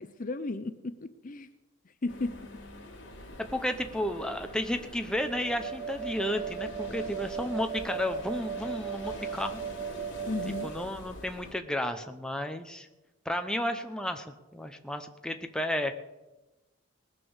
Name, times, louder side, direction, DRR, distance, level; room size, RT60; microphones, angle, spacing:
voice 1, 0.0-1.5 2.0-2.4 10.3-10.7, left 2 dB, 40° left, 11 dB, 0.6 m, -34 dB
sound 1, 2.1-11.5, left 1 dB, 60° left, 2.8 m, -45 dB
voice 2, 3.4-9.6 10.6-12.9 13.2-16.0, left 1 dB, 5° left, 6 dB, 0.8 m, -32 dB
sound 2, 5.3-10.7, right 8 dB, 20° right, 1.0 m, -37 dB
19.5 x 6.8 x 7.2 m, 1.0 s
head